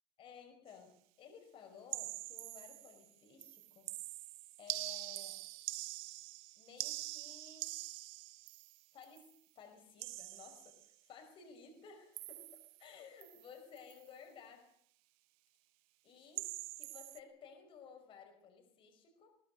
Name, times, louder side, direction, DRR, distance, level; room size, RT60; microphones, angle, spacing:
voice 1, 0.2-4.3 4.6-5.4 6.6-7.7 8.9-12.5 12.8-14.7 16.0-19.4, left 6 dB, 40° left, 4 dB, 5.4 m, -56 dB
sound 1, 1.9-3.1 3.4-9.3 10.0-10.9 12.2-12.9 13.2-13.5 13.8-14.0 16.4-17.2, right 21 dB, 80° right, 0.9 m, -45 dB
22.0 x 19.5 x 6.7 m, 0.65 s
cardioid pair, 145°, 14 cm